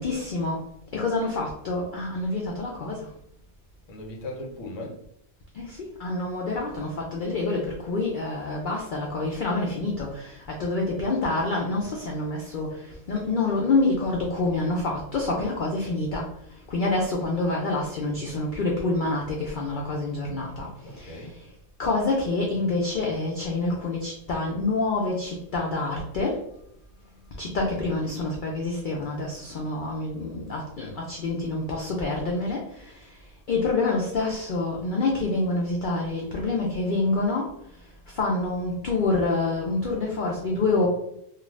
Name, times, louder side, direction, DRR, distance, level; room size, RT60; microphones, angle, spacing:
voice 1, 0.0-3.1 5.5-21.5 21.8-26.4 27.4-33.2 33.5-37.5 37.8-40.9, left 2 dB, 90° left, -2 dB, 0.4 m, -27 dB
voice 2, 3.9-5.0 20.8-21.4 40.5-40.9, left 1 dB, 65° left, 1 dB, 1.0 m, -38 dB
2.5 x 2.3 x 3.1 m, 0.76 s
omnidirectional pair, 1.4 m